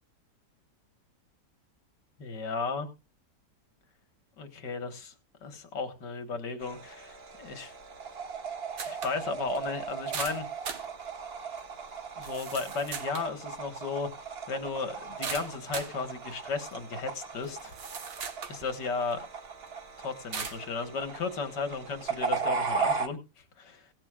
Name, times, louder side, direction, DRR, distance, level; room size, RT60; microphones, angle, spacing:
voice 1, 2.2-2.9 4.4-5.1 5.4-7.7 8.9-10.5 12.2-14.1 14.5-17.8 18.5-19.3 20.0-23.9, left 4 dB, 80° left, 2.3 m, -35 dB
sound 1, 6.6-23.1, right 5 dB, 40° right, 1.2 m, -37 dB
sound 2, 8.8-9.2 9.6-9.7 10.1-10.9 11.6-11.7 12.2-13.3 15.2-16.0 16.7-16.8 17.4-18.6 19.1-19.2 20.3-20.6, right 6 dB, 80° right, 2.2 m, -38 dB
17.5 x 12.0 x 2.5 m
omnidirectional pair, 1.8 m